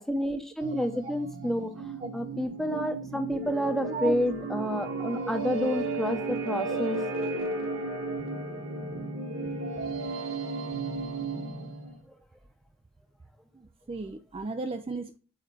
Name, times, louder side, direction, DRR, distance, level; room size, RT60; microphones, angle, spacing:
voice 1, 0.0-7.0, equal, ahead, 0.8 m, -30 dB
sound 1, 0.6-12.0, right 3 dB, 75° right, 1.7 m, -34 dB
voice 2, 13.9-15.2, right 3 dB, 25° right, 0.4 m, -35 dB
7.9 x 4.3 x 4.8 m
head